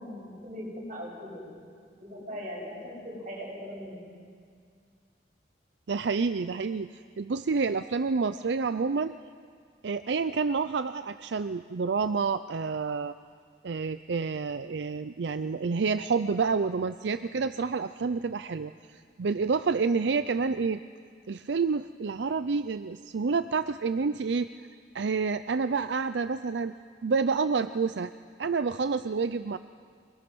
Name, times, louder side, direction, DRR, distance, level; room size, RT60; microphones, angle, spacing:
voice 1, 0.0-1.4 2.0-4.0, equal, 45° right, -3 dB, 7.6 m, -39 dB
voice 2, 5.9-9.2 9.8-13.1 13.6-20.8 21.3-24.5 24.9-26.7 27.0-28.1 28.4-29.6, right 4 dB, 80° right, 11 dB, 0.5 m, -28 dB
24.5 x 21.5 x 6.2 m, 2.1 s
head